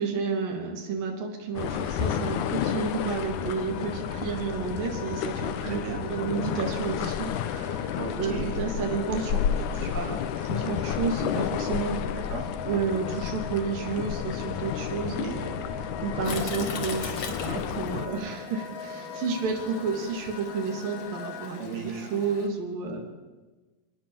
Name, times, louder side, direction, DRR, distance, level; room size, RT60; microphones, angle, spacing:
voice 1, 0.0-12.0 12.7-15.6 16.0-23.0, right 5 dB, 65° right, 2 dB, 4.8 m, -31 dB
sound 1, 1.6-18.1, left 9 dB, 65° left, 2.4 m, -31 dB
sound 2, 2.5-21.6, left 7 dB, 90° left, 3.4 m, -41 dB
voice 2, 5.6-6.1 8.0-8.6 12.1-12.4 15.1-15.4 21.6-21.9, right 5 dB, 85° right, 2 dB, 4.8 m, -35 dB
Toilet flush, 16.2-22.5, left 5 dB, 50° left, 3.3 m, -40 dB
27.0 x 19.5 x 7.5 m, 1.2 s
omnidirectional pair, 4.2 m